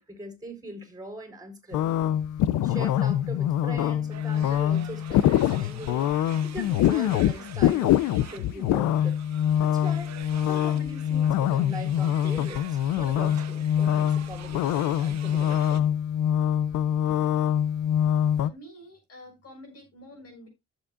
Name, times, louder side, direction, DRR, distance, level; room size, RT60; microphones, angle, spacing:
voice 1, 0.0-1.8 2.6-6.1 6.4-9.2 9.6-10.2 10.5-16.0, right 1 dB, 10° right, 4.5 m, -41 dB
sound 1, 1.7-18.5, left 10 dB, 85° left, 0.6 m, -24 dB
sound 2, 4.1-15.8, right 10 dB, 60° right, 1.3 m, -47 dB
voice 2, 18.3-20.5, equal, 50° left, 6.6 m, -48 dB
15.0 x 7.3 x 2.4 m
cardioid pair, 90°, 30 cm